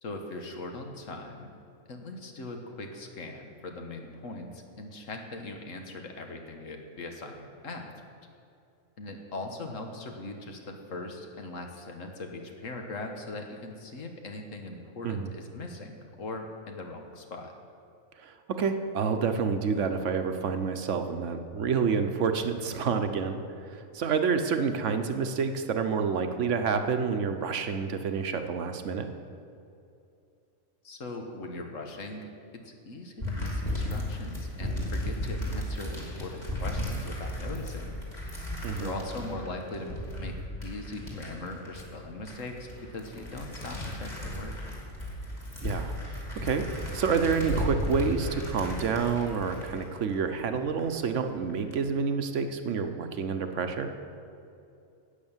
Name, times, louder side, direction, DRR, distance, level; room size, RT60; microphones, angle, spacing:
voice 1, 0.0-1.5 1.9-7.9 9.0-17.5 30.8-32.2 32.6-37.9 38.8-40.3 40.6-44.6, left 2 dB, 75° left, 3 dB, 1.6 m, -40 dB
voice 2, 18.2-29.1 38.6-39.0 45.6-53.9, right 5 dB, 70° right, 7 dB, 1.1 m, -29 dB
sound 1, 33.2-50.8 51.3-51.7, left 1 dB, 35° left, 2.9 m, -35 dB
11.5 x 8.6 x 7.2 m, 2.6 s
omnidirectional pair, 1.3 m